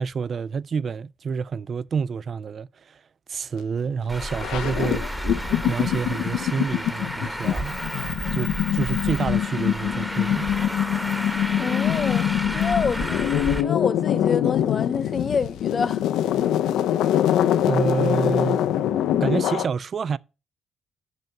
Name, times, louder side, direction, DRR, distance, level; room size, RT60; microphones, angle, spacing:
voice 1, 0.0-3.0 3.3-5.0 5.7-7.8 8.3-10.5 17.7-18.6 19.2-20.2, right 5 dB, 50° right, 0.3 m, -28 dB
sound 1, 3.9-4.0 4.2-19.7, left 11 dB, 85° left, 0.5 m, -24 dB
Traffic noise roadway noise, 4.1-13.6, equal, 5° right, 1.0 m, -31 dB
voice 2, 11.6-12.3 12.5-16.0, left 5 dB, 40° left, 0.6 m, -27 dB
6.7 x 5.2 x 5.8 m
cardioid pair, 90°, 0 cm